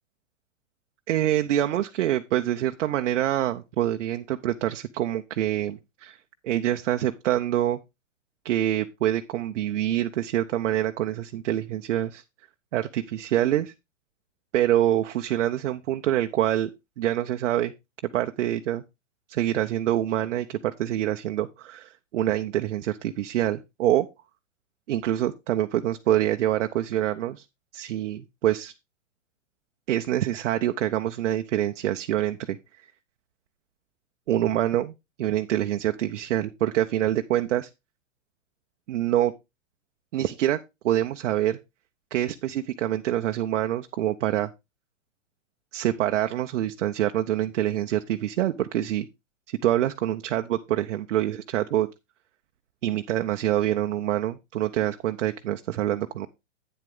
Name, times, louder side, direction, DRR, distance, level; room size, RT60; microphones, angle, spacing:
voice 1, 1.1-6.2 6.4-7.8 8.4-12.2 12.7-13.7 14.5-16.7 17.0-17.7 18.1-18.8 19.3-24.1 24.9-27.4 27.7-28.7 29.9-32.6 34.3-34.9 35.2-37.7 38.9-39.3 40.1-40.6 40.8-41.6 42.1-44.5 45.7-49.1 49.5-51.9 52.8-56.3, right 12 dB, 65° right, 7 dB, 0.7 m, -26 dB
8.9 x 7.7 x 3.6 m, 0.23 s
hypercardioid pair, 130°, 38 cm